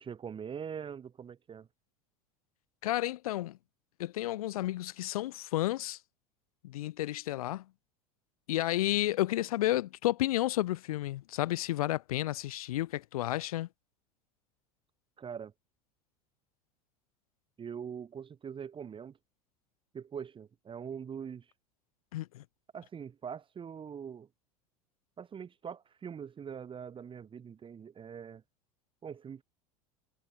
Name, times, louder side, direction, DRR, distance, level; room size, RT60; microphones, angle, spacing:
voice 1, 0.0-1.7 15.2-15.5 17.6-19.1 19.9-21.5 22.7-24.3 25.2-28.4 29.0-29.4, right 7 dB, 25° right, 1.8 m, -42 dB
voice 2, 2.8-3.6 4.0-6.0 6.6-7.7 8.5-13.7 22.1-22.4, left 15 dB, 70° left, 1.8 m, -31 dB
hypercardioid pair, 80°, 19 cm